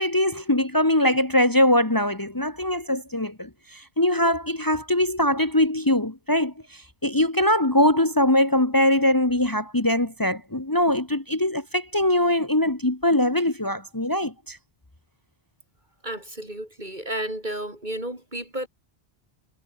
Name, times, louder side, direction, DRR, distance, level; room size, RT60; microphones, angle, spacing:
voice 1, 0.0-14.6, left 1 dB, 20° left, 1.8 m, -22 dB
voice 2, 16.0-18.7, right 1 dB, 50° right, 7.7 m, -32 dB
omnidirectional pair, 1.1 m